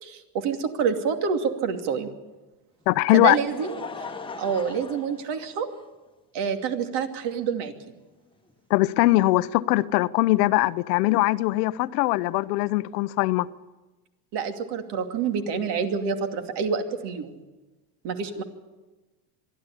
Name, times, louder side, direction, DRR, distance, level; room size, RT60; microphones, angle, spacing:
voice 1, 0.0-2.1 3.1-3.7 4.4-5.7 6.3-7.7 14.3-17.4 18.0-18.4, right 6 dB, 60° right, 2.7 m, -27 dB
voice 2, 2.9-3.4 8.7-13.5, left 18 dB, 85° left, 0.9 m, -21 dB
Laughter, 2.9-6.1 6.9-7.0 8.5-8.6, left 4 dB, 10° left, 1.3 m, -40 dB
23.5 x 13.0 x 9.9 m
supercardioid pair, 135°, 46 cm